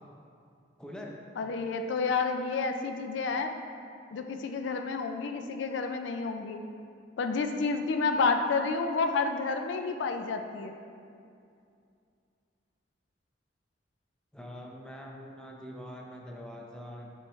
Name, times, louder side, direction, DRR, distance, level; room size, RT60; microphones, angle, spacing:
voice 1, 0.8-1.2 14.3-17.1, equal, 5° left, -1 dB, 0.5 m, -44 dB
voice 2, 1.4-3.5 4.1-6.6 7.2-10.8, left 4 dB, 70° left, 6 dB, 0.4 m, -30 dB
7.4 x 4.7 x 3.1 m, 2.4 s
head